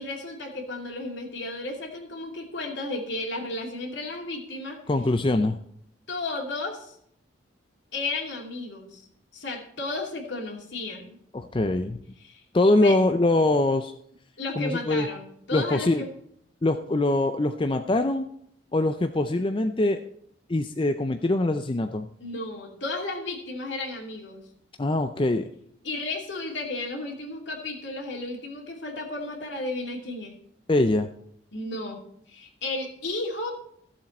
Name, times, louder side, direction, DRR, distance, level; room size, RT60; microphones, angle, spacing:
voice 1, 0.0-4.8 6.1-7.0 7.9-9.1 9.3-11.2 12.2-12.4 12.8-13.0 14.4-16.1 22.2-24.4 25.8-30.3 31.5-33.5, left 2 dB, 70° left, 1 dB, 2.7 m, -33 dB
voice 2, 4.9-5.6 11.3-12.0 12.5-13.9 14.6-15.1 15.5-16.0 16.6-18.3 18.7-20.0 20.5-22.1 24.8-25.5 30.7-31.1, left 2 dB, 25° left, 7 dB, 0.4 m, -23 dB
15.0 x 7.4 x 4.3 m, 0.69 s
head